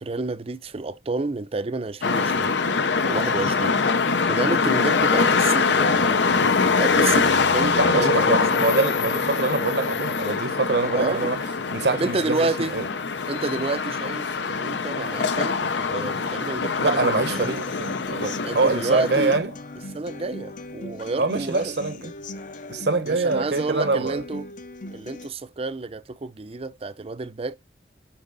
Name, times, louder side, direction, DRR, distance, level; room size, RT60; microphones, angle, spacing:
voice 1, 0.0-2.5 3.0-8.4 10.9-11.3 11.9-12.8 13.3-17.6 18.4-19.3 19.9-21.7 23.0-24.5 24.9-27.6, right 3 dB, 35° right, 0.5 m, -30 dB
sound 1, 2.0-19.4, left 4 dB, 85° left, 0.8 m, -23 dB
voice 2, 7.8-11.4 11.7-12.8 16.8-19.5 21.2-22.1 22.7-24.2, right 3 dB, 65° right, 1.1 m, -24 dB
Human voice / Acoustic guitar, 17.3-25.3, left 2 dB, 45° left, 0.7 m, -39 dB
8.8 x 5.1 x 4.0 m
head